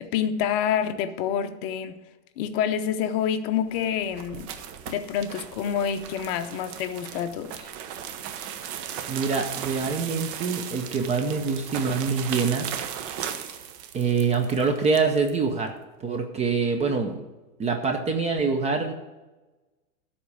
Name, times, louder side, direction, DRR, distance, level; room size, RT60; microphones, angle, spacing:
voice 1, 0.0-2.0 2.4-4.5 4.9-7.7, left 8 dB, 40° left, 0.8 m, -27 dB
sound 1, 3.6-15.4, right 9 dB, 40° right, 1.0 m, -37 dB
voice 2, 9.1-12.7 13.9-15.7 16.0-17.2 17.6-18.9, right 5 dB, 15° right, 0.5 m, -25 dB
12.5 x 4.3 x 8.3 m
hypercardioid pair, 120°, 48 cm